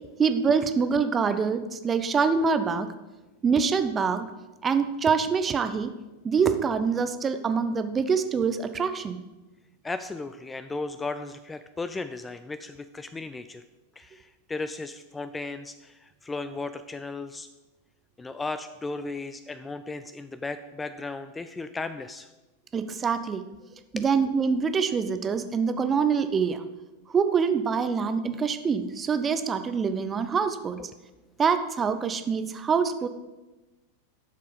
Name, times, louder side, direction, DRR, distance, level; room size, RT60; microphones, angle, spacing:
voice 1, 0.2-2.9 3.4-4.3 4.6-5.9 6.2-9.2 22.7-23.4 23.9-26.6 27.1-30.8 31.4-33.1, right 5 dB, 20° right, 10 dB, 0.7 m, -25 dB
voice 2, 9.8-13.6 14.0-17.5 18.2-22.3 23.9-24.0 30.8-30.9, left 3 dB, 10° left, 11 dB, 0.4 m, -35 dB
11.5 x 6.7 x 5.1 m, 1.1 s
figure-of-eight pair, 90°, 0 cm